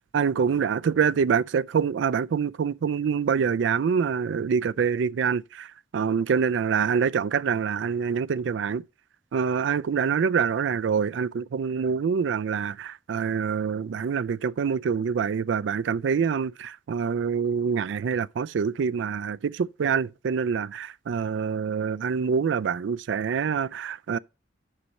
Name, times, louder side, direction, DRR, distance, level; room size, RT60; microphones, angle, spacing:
voice 1, 0.1-5.7 5.9-8.8 9.3-24.2, right 6 dB, 75° right, 0.4 m, -25 dB
9.8 x 6.4 x 4.1 m
head